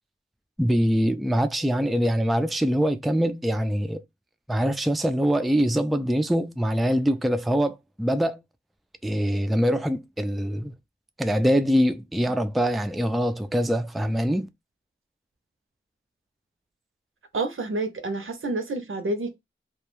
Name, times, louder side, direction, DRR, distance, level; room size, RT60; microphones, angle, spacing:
voice 1, 0.6-4.0 4.5-8.4 9.0-10.7 11.2-14.5, equal, ahead, 0.3 m, -23 dB
voice 2, 17.3-19.4, right 2 dB, 75° right, 0.6 m, -29 dB
2.3 x 2.1 x 3.0 m
wide cardioid pair, 40°, 21 cm